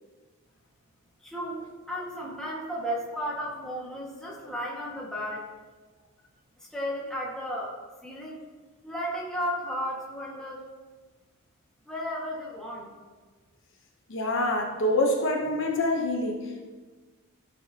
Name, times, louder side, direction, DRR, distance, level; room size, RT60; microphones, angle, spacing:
voice 1, 1.2-1.6 1.9-5.5 6.6-8.4 8.8-10.7 11.9-12.9, equal, 5° left, -5 dB, 1.6 m, -34 dB
voice 2, 14.1-16.6, left 1 dB, 55° left, 1 dB, 0.9 m, -26 dB
13.5 x 6.5 x 2.8 m, 1.3 s
head